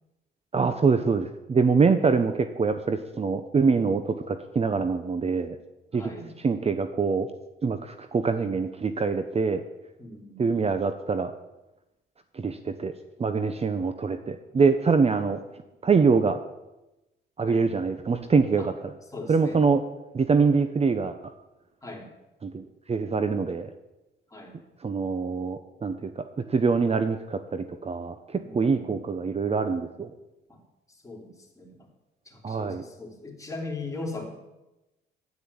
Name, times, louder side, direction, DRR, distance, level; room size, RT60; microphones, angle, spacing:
voice 1, 0.5-2.3 2.6-5.6 5.9-6.1 6.4-7.3 7.6-9.6 10.4-11.3 12.3-12.9 13.2-15.4 15.8-16.4 17.4-18.7 19.3-19.8 20.1-21.2 22.4-23.7 24.8-30.1 32.4-32.8, right 5 dB, 30° right, 9 dB, 0.8 m, -24 dB
voice 2, 5.9-6.4 10.0-10.5 17.5-17.7 18.6-18.7 19.1-19.6 21.8-22.1 24.3-24.6 28.4-29.0 30.5-30.6 30.9-31.9 32.3-34.3, left 2 dB, 15° left, 0 dB, 3.6 m, -39 dB
10.0 x 9.4 x 8.7 m, 0.99 s
cardioid pair, 90°, 20 cm